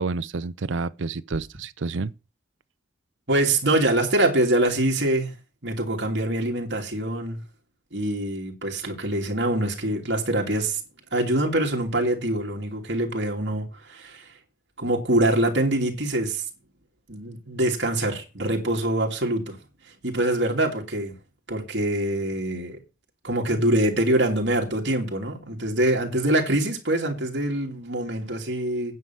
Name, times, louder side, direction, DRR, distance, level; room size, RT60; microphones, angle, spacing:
voice 1, 0.0-2.1, right 4 dB, 80° right, 0.6 m, -29 dB
voice 2, 3.3-5.3 5.6-7.4 7.9-10.8 11.1-14.2 14.8-16.4 17.1-19.6 20.0-21.2 21.5-22.8 23.2-29.0, right 1 dB, 65° right, 2.7 m, -24 dB
9.6 x 5.6 x 7.6 m
head